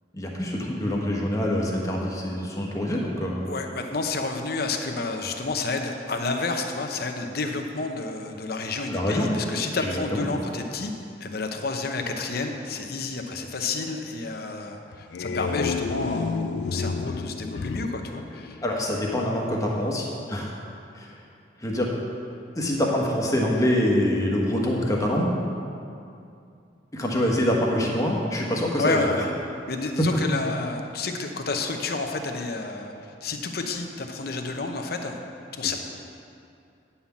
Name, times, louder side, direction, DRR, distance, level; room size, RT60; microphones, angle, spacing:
voice 1, 0.1-3.5 8.9-9.3 9.8-10.3 18.6-20.5 20.9-21.1 21.6-22.0 22.5-25.3 26.9-29.0 30.0-30.2, left 1 dB, 20° left, -2 dB, 1.3 m, -25 dB
voice 2, 3.4-10.9 11.2-18.6 28.8-29.3 29.7-35.2 35.5-35.8, left 3 dB, 60° left, 4 dB, 0.9 m, -30 dB
sound 1, 14.9-19.1, left 5 dB, 75° left, 0.3 m, -31 dB
9.4 x 5.7 x 7.2 m, 2.5 s
head